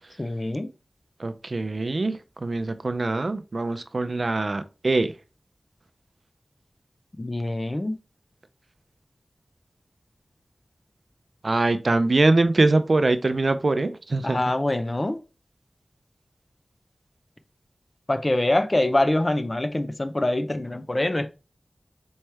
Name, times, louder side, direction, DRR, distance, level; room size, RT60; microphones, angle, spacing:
voice 1, 0.2-0.7 7.2-8.0 14.2-15.2 18.1-21.3, left 1 dB, 40° left, 0.6 m, -24 dB
voice 2, 1.2-5.1 11.4-14.5, right 2 dB, 65° right, 0.5 m, -23 dB
4.3 x 3.2 x 3.3 m
wide cardioid pair, 45°, 0 cm